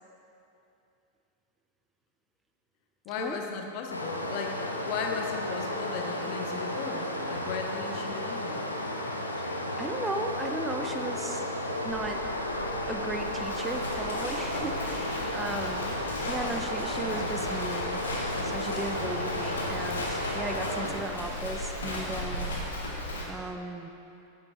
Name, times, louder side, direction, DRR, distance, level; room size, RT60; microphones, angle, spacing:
voice 1, 3.0-8.6, left 5 dB, 45° left, 3 dB, 0.8 m, -36 dB
Stream, 3.9-20.9, left 1 dB, 85° left, 0.6 m, -33 dB
voice 2, 9.4-11.4 11.8-12.2 12.9-16.0 16.3-18.0 18.4-22.5 22.8-23.0 23.3-23.9, right 2 dB, 10° right, 5 dB, 0.4 m, -36 dB
Livestock farm animals working animals, 11.9-23.2, left 1 dB, 70° left, 1.2 m, -36 dB
9.4 x 7.7 x 2.8 m, 2.7 s
figure-of-eight pair, 90°, 0 cm